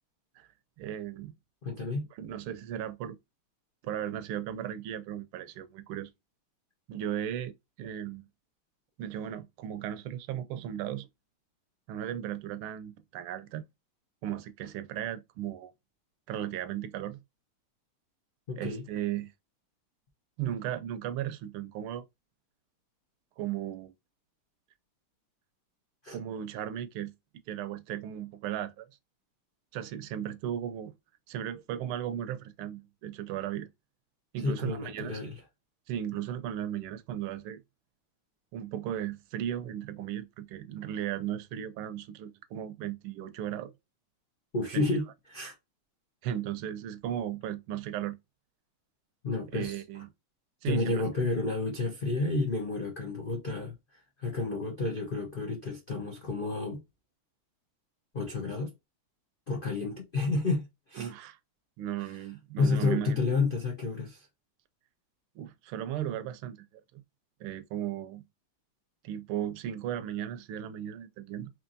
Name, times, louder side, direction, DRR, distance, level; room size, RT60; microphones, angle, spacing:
voice 1, 0.8-1.3 2.2-3.2 3.8-6.1 6.9-8.2 9.0-11.1 11.9-13.7 14.2-15.7 16.3-17.2 18.5-19.3 20.4-22.0 23.4-23.9 26.1-27.1 27.5-28.9 29.7-30.9 31.3-33.7 34.3-35.2 35.9-37.6 38.5-43.7 44.7-44.8 45.4-45.5 46.2-48.2 49.5-50.1 50.6-50.9 61.0-61.4 61.8-63.2 65.4-67.0 67.4-68.2 69.0-71.5, right 11 dB, 80° right, 1.4 m, -36 dB
voice 2, 1.6-2.1 18.5-18.8 26.0-26.2 34.4-35.4 44.5-45.6 49.2-49.8 50.6-56.8 58.1-58.7 59.5-61.1 62.0-62.1 62.6-64.3, left 3 dB, 85° left, 0.4 m, -31 dB
4.4 x 3.1 x 2.5 m
omnidirectional pair, 2.4 m